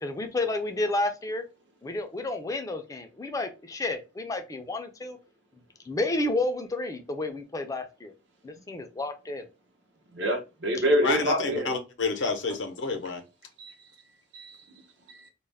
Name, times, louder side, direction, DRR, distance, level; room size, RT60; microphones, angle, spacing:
voice 1, 0.0-1.4 1.8-5.2 5.9-8.1 8.4-9.5, left 2 dB, 20° left, 0.3 m, -31 dB
voice 2, 10.1-11.7 13.6-13.7 14.3-14.6 15.1-15.3, equal, 75° right, 0.8 m, -26 dB
voice 3, 11.0-13.2, left 4 dB, 75° left, 0.6 m, -29 dB
2.3 x 2.1 x 3.2 m
head